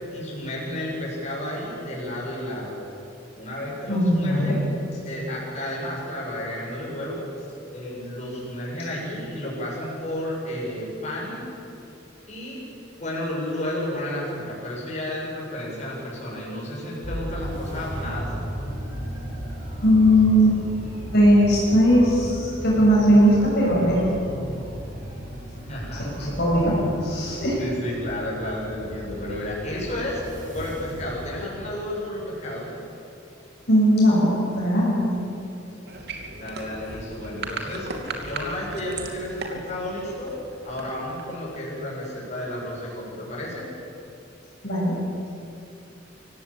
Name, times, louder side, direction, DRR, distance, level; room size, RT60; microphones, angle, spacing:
voice 1, 0.1-2.8 3.3-4.6 5.0-7.2 7.7-11.5 12.3-12.6 13.0-18.3 25.6-26.3 27.6-30.2 30.5-32.7 36.3-40.3 40.6-43.6, left 1 dB, 35° left, -5 dB, 7.6 m, -32 dB
voice 2, 3.9-4.5 19.8-20.6 21.1-24.0 26.0-26.1 26.4-27.6 33.7-35.1 44.6-44.9, equal, 55° left, -5 dB, 6.9 m, -18 dB
sound 1, 17.0-31.4, equal, 45° right, 7.9 m, -35 dB
sound 2, 35.9-41.7, right 3 dB, 60° right, 2.9 m, -37 dB
25.5 x 17.0 x 8.9 m, 2.8 s
head